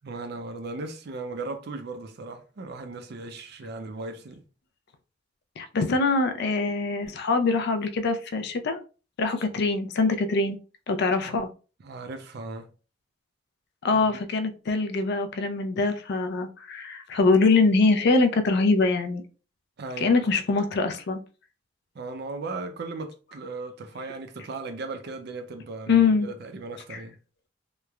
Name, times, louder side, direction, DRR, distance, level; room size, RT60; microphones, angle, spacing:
voice 1, 0.0-4.4 11.3-11.4 11.8-12.7 13.9-14.2 19.8-20.3 21.9-27.2, right 3 dB, 60° right, 0.5 m, -37 dB
voice 2, 5.6-8.8 9.2-10.6 10.9-11.5 13.8-19.2 20.0-21.2 25.9-26.3, left 3 dB, 60° left, 0.4 m, -23 dB
3.0 x 2.1 x 2.3 m
head